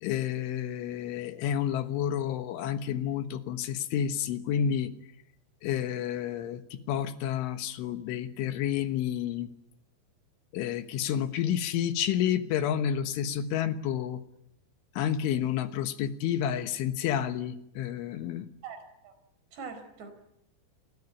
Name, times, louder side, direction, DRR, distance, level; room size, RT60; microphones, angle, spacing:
voice 1, 0.0-4.9 5.6-9.5 10.5-14.2 15.0-18.5, left 9 dB, 75° left, 9 dB, 3.6 m, -30 dB
voice 2, 18.6-19.1 19.5-20.1, right 5 dB, 55° right, 9 dB, 6.3 m, -43 dB
29.0 x 20.5 x 9.8 m, 0.81 s
omnidirectional pair, 5.8 m